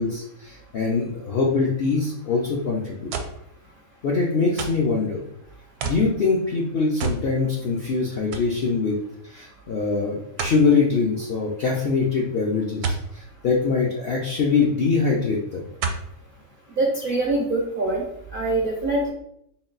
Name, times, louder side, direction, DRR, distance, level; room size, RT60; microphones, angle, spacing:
voice 1, 0.0-3.1 4.0-5.2 5.8-9.0 9.3-15.6, left 4 dB, 65° left, -2 dB, 0.6 m, -23 dB
sound 1, 3.1-3.4 4.6-4.9 5.8-6.1 7.0-7.3 7.7-7.8 8.3-8.5 10.4-10.6 12.8-13.1 14.5-14.6 15.8-16.1 16.8-16.9, right 5 dB, 80° right, 1.1 m, -28 dB
voice 2, 16.8-18.0 18.3-19.1, right 2 dB, 60° right, -2 dB, 0.6 m, -23 dB
3.8 x 2.3 x 3.8 m, 0.74 s
omnidirectional pair, 1.6 m